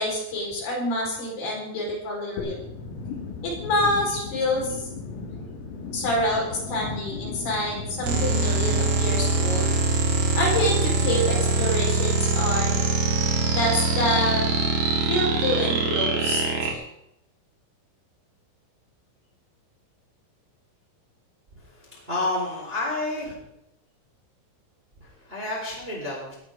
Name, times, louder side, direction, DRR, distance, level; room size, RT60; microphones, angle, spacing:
voice 1, 0.0-2.5 3.4-4.9 5.9-9.7 10.4-12.7 13.5-14.5 15.0-16.8, left 1 dB, 55° left, -2 dB, 6.3 m, -27 dB
sound 1, 2.4-9.3, left 4 dB, 80° left, 5.6 m, -36 dB
sound 2, 8.0-16.7, right 3 dB, 55° right, 2.8 m, -23 dB
voice 2, 21.6-23.3 25.0-26.3, left 2 dB, 10° right, -3 dB, 3.7 m, -30 dB
19.5 x 14.5 x 3.7 m, 0.81 s
omnidirectional pair, 5.9 m